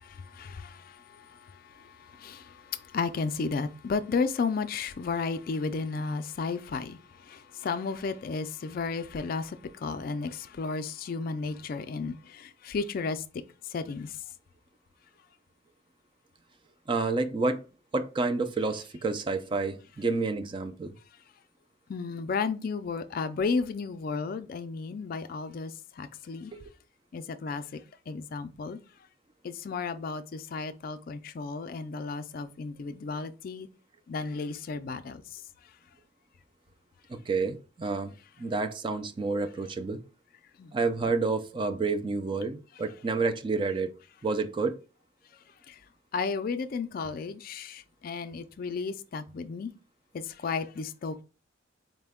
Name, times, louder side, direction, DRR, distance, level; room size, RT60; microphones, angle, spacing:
voice 1, 0.0-1.3 1.8-1.9 2.1-7.0 7.3-13.2 13.7-14.1 21.9-26.5 27.1-28.8 29.4-33.7 34.1-35.2 40.6-40.7 45.7-45.8 46.1-49.7 50.1-51.2, left 4 dB, 50° left, 0.3 m, -33 dB
voice 2, 16.9-17.6 17.9-20.9 26.5-26.7 37.1-38.1 38.4-40.0 40.7-43.9 44.2-44.8, right 3 dB, 25° right, 0.3 m, -29 dB
4.2 x 2.2 x 3.5 m
head